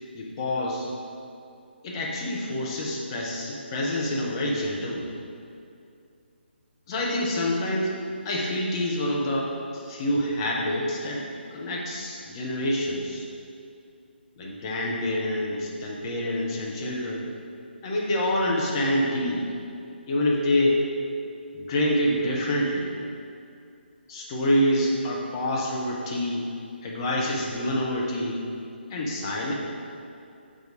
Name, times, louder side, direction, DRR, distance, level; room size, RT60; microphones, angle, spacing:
voice 1, 0.1-0.9 1.8-5.1 6.9-7.9 8.2-11.3 11.5-13.3 14.4-17.3 17.8-19.5 20.1-20.8 21.5-22.9 24.1-26.5 26.8-28.4 28.9-29.5, left 1 dB, 25° left, -2 dB, 0.8 m, -27 dB
6.4 x 4.9 x 4.0 m, 2.5 s
figure-of-eight pair, 145°, 6 cm